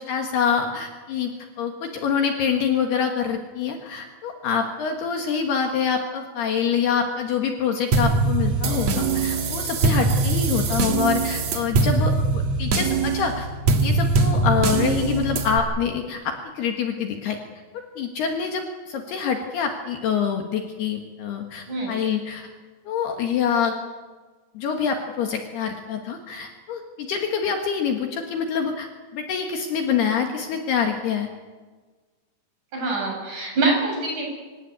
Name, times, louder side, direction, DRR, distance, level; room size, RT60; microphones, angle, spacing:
voice 1, 0.1-1.3 1.6-13.5 13.8-17.4 17.7-22.5 22.9-23.8 24.5-28.9 29.1-31.3, left 7 dB, 65° left, 4 dB, 3.3 m, -26 dB
sound 1, 7.9-15.6, right 3 dB, 65° right, 1.6 m, -22 dB
voice 2, 32.7-34.3, right 3 dB, 40° right, -1 dB, 8.6 m, -24 dB
25.5 x 15.5 x 9.4 m, 1.3 s
omnidirectional pair, 5.6 m